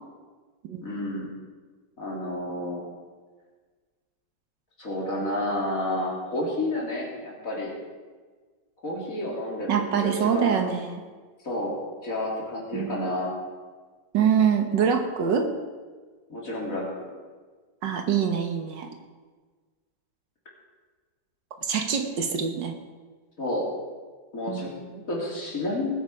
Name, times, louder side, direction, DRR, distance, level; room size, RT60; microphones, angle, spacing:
voice 1, 0.8-1.3 2.0-2.8 4.8-7.7 8.8-10.6 11.4-13.3 16.3-17.0 23.4-23.7 24.3-24.7 25.1-25.9, left 1 dB, 45° left, -3 dB, 3.4 m, -30 dB
voice 2, 9.7-11.0 12.7-13.0 14.1-15.5 17.8-18.9 21.6-22.7 24.5-25.0, right 7 dB, 75° right, 5 dB, 1.9 m, -25 dB
19.5 x 9.0 x 4.8 m, 1.4 s
omnidirectional pair, 2.0 m